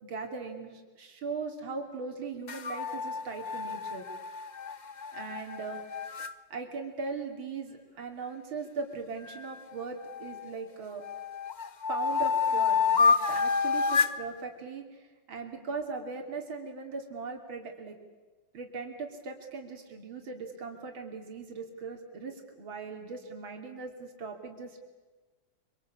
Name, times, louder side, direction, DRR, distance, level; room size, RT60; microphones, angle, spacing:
voice 1, 0.0-4.1 5.1-6.1 6.5-11.0 11.9-18.0 18.5-24.8, right 4 dB, 80° right, 3 dB, 3.5 m, -39 dB
sound 1, 2.5-6.3 9.3-10.5 11.0-14.2, left 5 dB, 70° left, 0.4 m, -29 dB
25.5 x 25.0 x 8.5 m, 1.3 s
omnidirectional pair, 2.2 m